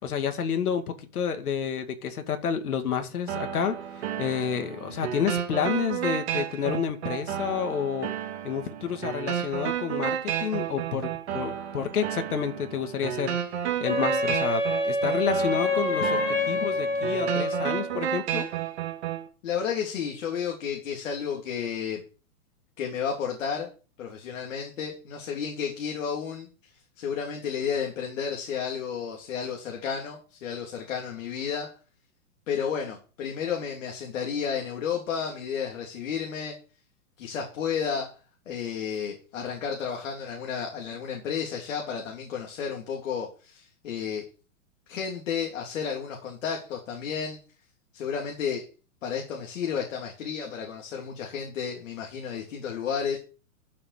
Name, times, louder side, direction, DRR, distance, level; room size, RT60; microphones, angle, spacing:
voice 1, 0.0-8.1 8.4-13.4 13.8-18.5, left 7 dB, 90° left, 2.3 m, -30 dB
sound 1, 3.3-19.3, right 10 dB, 45° right, 2.2 m, -32 dB
Wind instrument woodwind instrument, 13.8-17.9, left 1 dB, 20° left, 3.7 m, -27 dB
voice 2, 19.4-22.0 22.8-23.7 24.0-26.5 27.0-31.7 32.5-36.6 37.2-38.2 38.5-44.2 44.9-47.4 47.9-48.6 49.0-53.2, left 7 dB, 60° left, 3.6 m, -32 dB
12.0 x 7.2 x 5.0 m
hypercardioid pair, 160°, 43 cm